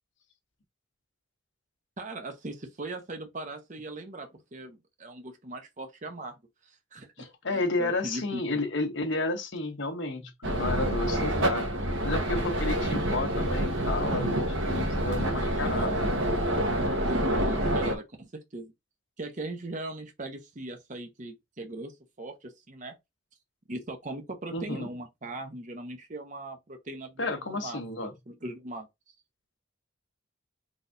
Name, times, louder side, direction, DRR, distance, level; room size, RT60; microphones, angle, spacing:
voice 1, 2.0-6.4 6.6-8.6 15.3-15.9 17.0-18.7 19.2-22.9 23.7-28.9, right 2 dB, 40° right, 0.9 m, -39 dB
voice 2, 7.2-16.2 24.5-24.9 27.2-28.1, left 2 dB, 60° left, 1.1 m, -32 dB
sound 1, 10.4-18.0, right 1 dB, 65° right, 1.1 m, -27 dB
4.1 x 3.3 x 2.6 m
head